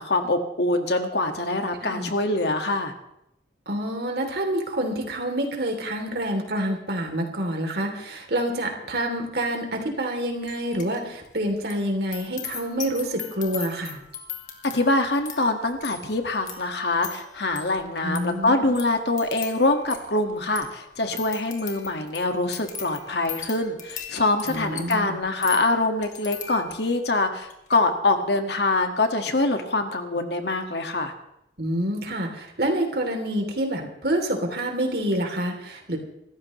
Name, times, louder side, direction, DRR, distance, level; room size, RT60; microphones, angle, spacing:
voice 1, 0.0-2.9 14.6-31.1, left 2 dB, 65° left, 5 dB, 1.9 m, -24 dB
voice 2, 1.8-2.1 3.7-14.0 18.0-18.6 24.5-25.2 31.6-36.0, right 1 dB, 60° right, 2 dB, 3.2 m, -27 dB
sound 1, 10.5-11.0 11.2-27.0 27.4-27.8, left 8 dB, 45° left, 2.1 m, -39 dB
26.0 x 14.0 x 3.2 m, 0.81 s
head